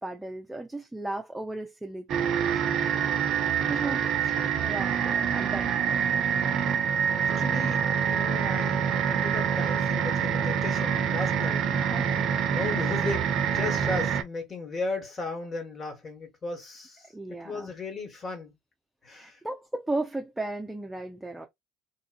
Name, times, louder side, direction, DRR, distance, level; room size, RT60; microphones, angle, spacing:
voice 1, 0.0-2.3 2.8-3.0 3.7-4.1 4.6-6.0 11.6-12.3 17.1-17.7 19.1-21.5, right 2 dB, 10° right, 0.7 m, -35 dB
sound 1, 2.1-14.2, right 8 dB, 55° right, 0.6 m, -26 dB
voice 2, 7.1-11.7 12.5-17.1 17.4-18.6 19.0-19.4, left 3 dB, 35° left, 1.5 m, -36 dB
3.1 x 2.5 x 2.4 m
hypercardioid pair, 70°, 0 cm